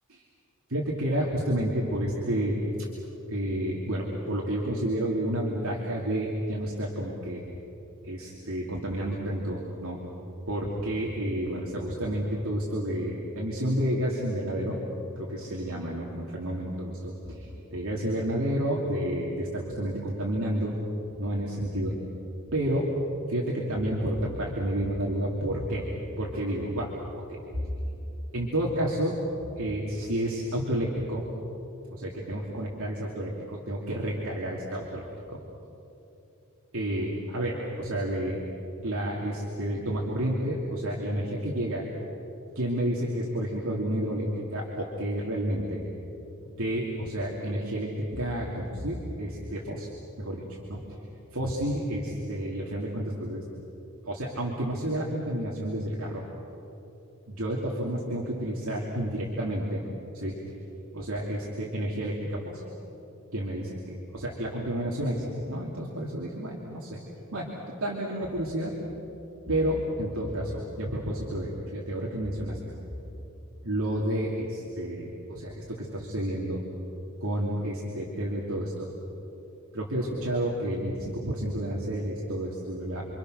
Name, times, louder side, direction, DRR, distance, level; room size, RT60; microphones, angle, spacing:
voice 1, 0.7-2.6 3.3-7.4 8.0-10.0 10.5-14.8 15.2-20.7 21.2-22.0 22.5-22.9 23.3-25.9 26.2-26.9 27.3-27.7 28.3-29.2 29.6-31.2 31.9-35.4 36.7-38.4 38.8-41.8 42.5-45.8 46.4-49.9 50.2-50.4 50.7-51.0 51.3-53.4 54.0-56.2 57.3-59.8 60.1-60.4 60.9-62.6 63.3-67.0 67.3-67.5 67.8-68.7 69.5-72.8 73.1-73.2 73.6-76.6 77.2-78.9 79.7-83.1, right 1 dB, 70° right, -3 dB, 2.9 m, -30 dB
29.5 x 24.5 x 6.5 m, 3.0 s
head